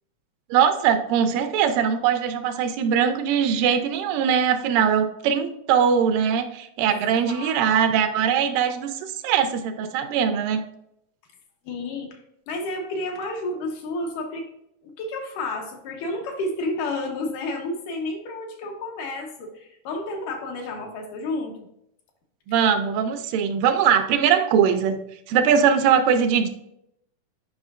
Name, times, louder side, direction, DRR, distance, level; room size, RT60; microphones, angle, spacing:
voice 1, 0.5-10.7 22.5-25.0 25.3-26.5, right 7 dB, 85° right, 8 dB, 2.3 m, -21 dB
voice 2, 6.9-7.7 11.6-12.2 12.5-14.5 14.8-21.7, left 2 dB, 80° left, 2 dB, 2.4 m, -31 dB
9.7 x 5.5 x 2.4 m, 0.78 s
omnidirectional pair, 3.8 m